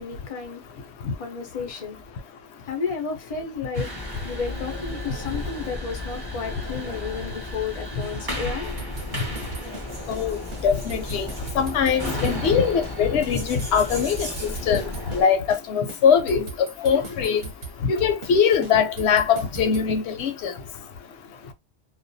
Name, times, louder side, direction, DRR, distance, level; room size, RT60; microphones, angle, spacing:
voice 1, 0.0-0.9 1.2-2.0 2.6-3.9 4.2-8.8, left 5 dB, 50° left, 0.4 m, -32 dB
sound 1, 3.7-15.2, left 1 dB, 25° right, 0.6 m, -33 dB
sound 2, 8.6-10.2 10.5-10.6 10.9-13.0 13.2-15.2 15.5-15.6 15.9-18.4 18.6-19.9, right 4 dB, 55° right, 0.9 m, -38 dB
voice 2, 10.6-11.3 11.6-14.3 14.7-17.4 17.8-20.5, left 7 dB, 65° left, 0.8 m, -22 dB
2.3 x 2.2 x 2.6 m
omnidirectional pair, 1.3 m